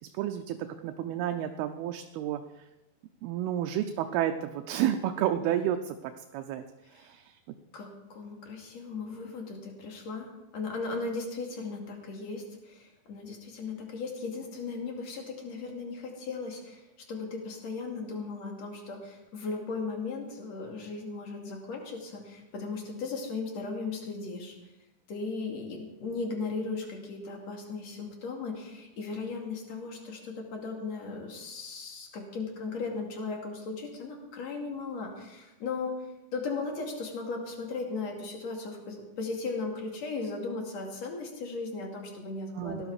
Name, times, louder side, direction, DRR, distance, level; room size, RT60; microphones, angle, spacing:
voice 1, 0.0-2.7 3.2-6.6 6.9-7.4 42.6-42.8, right 11 dB, 80° right, 6 dB, 2.6 m, -31 dB
voice 2, 7.7-24.5 25.1-35.9 36.3-42.9, left 4 dB, 45° left, 1 dB, 3.2 m, -37 dB
17.5 x 12.0 x 4.9 m, 1.0 s
omnidirectional pair, 4.5 m